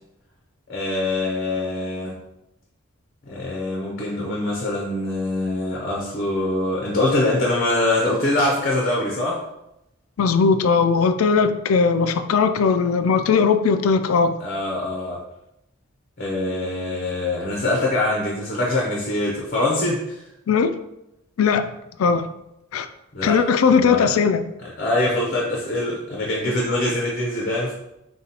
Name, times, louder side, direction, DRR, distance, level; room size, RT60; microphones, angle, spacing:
voice 1, 0.7-2.2 3.3-9.4 14.4-15.2 16.2-20.2 23.1-23.4 23.7-24.1 24.6-27.7, left 2 dB, 45° left, -2 dB, 0.7 m, -24 dB
voice 2, 10.2-14.3 20.5-20.8 21.4-21.7 22.0-22.3 22.7-22.9 23.2-24.4, left 5 dB, 85° left, 9 dB, 0.4 m, -18 dB
6.7 x 2.3 x 2.9 m, 0.88 s
head